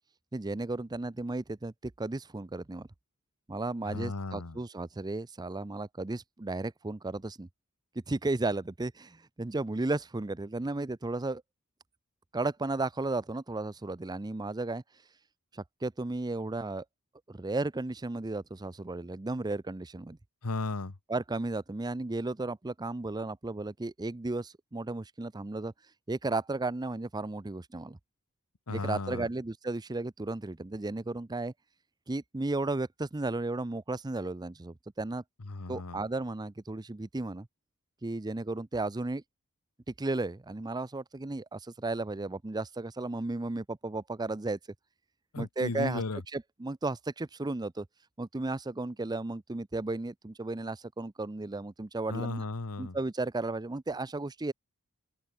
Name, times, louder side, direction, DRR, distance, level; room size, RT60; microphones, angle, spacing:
voice 1, 0.3-2.9 3.5-7.5 8.1-11.4 12.3-14.8 15.5-16.8 17.3-20.2 21.1-25.7 26.1-28.0 28.7-31.5 32.1-35.2 35.7-37.5 38.0-39.2 39.9-44.6 45.4-46.0 46.3-47.9 48.2-52.4 52.8-54.5, right 2 dB, 20° right, 0.5 m, -34 dB
voice 2, 3.8-4.6 20.4-21.0 28.7-29.3 35.4-36.0 45.3-46.2 52.1-53.0, left 3 dB, 80° left, 1.2 m, -35 dB
open air
head